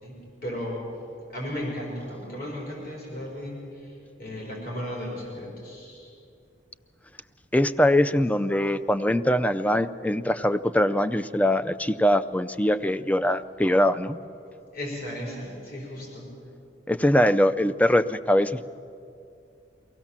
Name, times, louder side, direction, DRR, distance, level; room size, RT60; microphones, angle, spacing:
voice 1, 0.0-0.8 1.3-6.1 8.5-8.7 14.4-16.3, left 1 dB, 55° left, -3 dB, 4.9 m, -35 dB
voice 2, 7.5-14.2 16.9-18.6, left 1 dB, 10° left, 14 dB, 0.4 m, -22 dB
23.5 x 17.0 x 7.4 m, 2.6 s
head